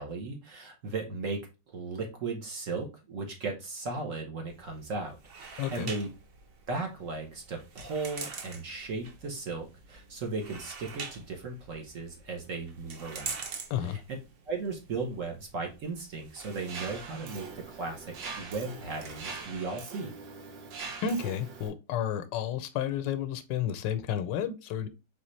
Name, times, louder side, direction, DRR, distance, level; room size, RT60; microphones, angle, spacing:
voice 1, 0.0-1.4 1.7-6.1 6.7-13.4 13.8-14.0 14.5-20.1, right 3 dB, 55° right, 1.2 m, -36 dB
sound 1, 4.5-19.5, right 5 dB, 70° right, 0.5 m, -46 dB
voice 2, 5.6-5.9 13.7-14.0 21.0-24.9, left 8 dB, 80° left, 1.3 m, -31 dB
Mechanisms, 16.7-21.7, right 4 dB, 85° right, 1.6 m, -42 dB
4.2 x 3.3 x 3.1 m
omnidirectional pair, 1.9 m